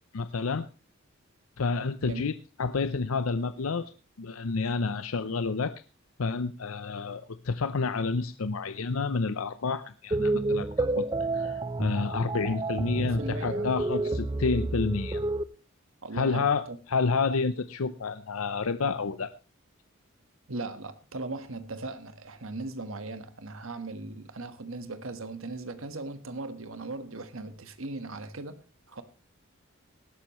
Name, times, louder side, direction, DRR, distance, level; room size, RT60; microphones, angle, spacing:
voice 1, 0.1-0.7 1.6-2.3 2.6-3.9 4.2-5.7 6.2-11.1 11.3-15.2 16.1-19.3, left 4 dB, 80° left, 0.6 m, -29 dB
sound 1, 10.1-15.4, right 2 dB, 20° right, 0.6 m, -29 dB
voice 2, 12.5-13.7 14.0-14.2 16.0-16.8 20.5-28.6 28.9-29.0, right 2 dB, 70° right, 1.4 m, -38 dB
19.0 x 12.0 x 3.1 m
head